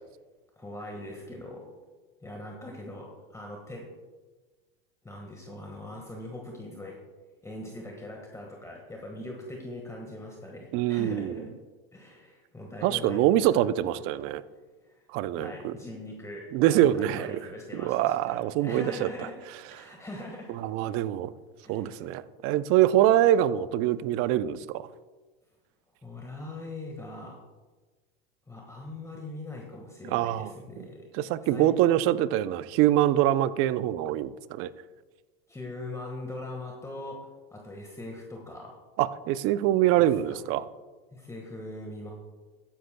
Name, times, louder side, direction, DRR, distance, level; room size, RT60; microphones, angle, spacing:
voice 1, 0.6-1.7 2.2-3.9 5.0-7.0 7.4-11.5 11.9-13.4 14.8-15.0 15.3-20.6 21.6-22.1 26.0-27.4 28.5-31.1 31.4-31.7 35.5-38.7 39.9-40.5 41.1-42.1, left 2 dB, 10° left, 0 dB, 1.5 m, -41 dB
voice 2, 10.7-11.4 12.8-14.4 15.1-15.7 16.5-17.4 17.7-19.1 20.5-21.3 21.7-24.9 30.1-30.5 30.8-30.9 31.2-34.7 39.0-40.6, right 13 dB, 50° right, 15 dB, 0.6 m, -24 dB
14.0 x 10.5 x 2.2 m, 1.3 s
hypercardioid pair, 105°, 30 cm